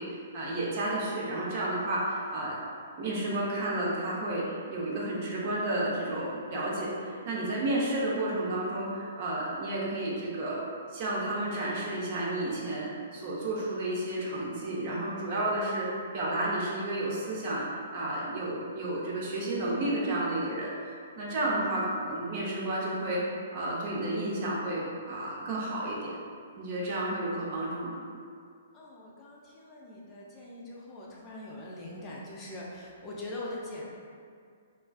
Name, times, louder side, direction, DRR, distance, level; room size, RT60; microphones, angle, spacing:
voice 1, 0.0-2.6 3.0-10.6 10.9-15.9 16.1-17.6 17.9-23.2 23.5-26.1 26.6-28.0, right 1 dB, 45° right, -5 dB, 0.6 m, -31 dB
voice 2, 28.7-33.8, left 1 dB, 25° left, -5 dB, 0.4 m, -42 dB
2.4 x 2.3 x 2.3 m, 2.2 s
figure-of-eight pair, 120°, 0 cm